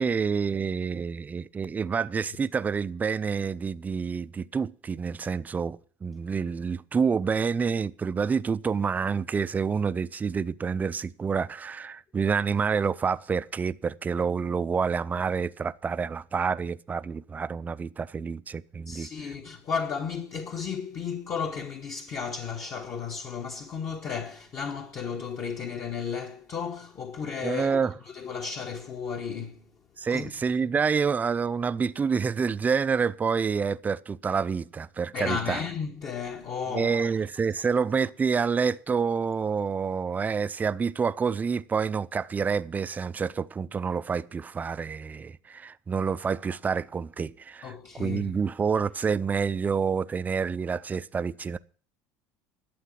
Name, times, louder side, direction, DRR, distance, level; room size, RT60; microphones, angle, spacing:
voice 1, 0.0-19.3 27.4-27.9 30.0-35.6 36.7-51.6, right 5 dB, 20° right, 0.5 m, -28 dB
voice 2, 18.9-29.6 30.1-30.3 35.1-37.1 47.6-48.3, left 6 dB, 40° left, 1.3 m, -34 dB
12.0 x 7.8 x 7.5 m
supercardioid pair, 120°, 8 cm